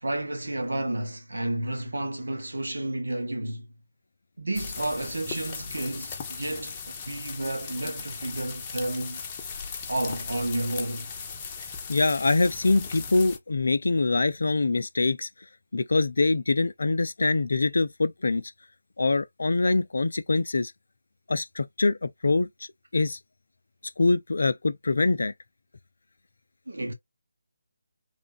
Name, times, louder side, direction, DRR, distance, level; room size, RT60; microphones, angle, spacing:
voice 1, 0.0-3.7 4.4-9.2 9.9-11.1 26.7-26.9, right 1 dB, 70° right, 1.2 m, -31 dB
sound 1, 4.5-13.4, left 5 dB, 20° left, 0.7 m, -38 dB
voice 2, 11.9-15.3 15.7-18.5 19.0-20.7 21.3-22.5 22.9-23.2 24.0-25.3, left 3 dB, 60° left, 0.4 m, -24 dB
3.3 x 2.2 x 4.0 m
figure-of-eight pair, 150°, 0 cm